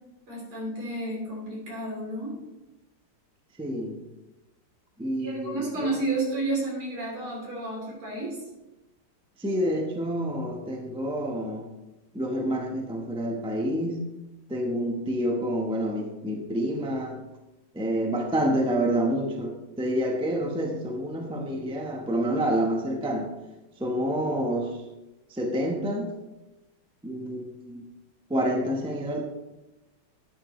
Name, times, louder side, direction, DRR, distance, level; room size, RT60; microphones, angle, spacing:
voice 1, 0.3-2.4 5.2-8.4, right 2 dB, 75° right, -3 dB, 4.2 m, -31 dB
voice 2, 3.6-4.0 5.0-5.9 9.4-11.6 12.1-14.0 14.5-17.2 17.7-23.3 23.8-24.7 25.3-26.1 27.0-27.8 28.3-29.2, equal, 5° right, 2 dB, 0.5 m, -28 dB
12.0 x 8.3 x 3.2 m, 1.0 s
omnidirectional pair, 2.4 m